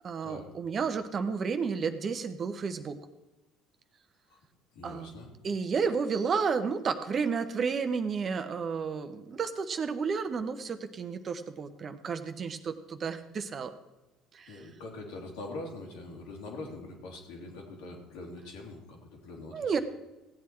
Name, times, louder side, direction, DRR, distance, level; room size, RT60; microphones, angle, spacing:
voice 1, 0.0-3.0 4.8-5.1 5.4-13.7 14.3-14.7 19.5-19.8, right 5 dB, 40° right, 9 dB, 1.1 m, -31 dB
voice 2, 4.7-5.3 14.5-19.8, left 2 dB, 75° left, -1 dB, 2.9 m, -43 dB
15.5 x 8.5 x 4.5 m, 1.0 s
hypercardioid pair, 70°, 0 cm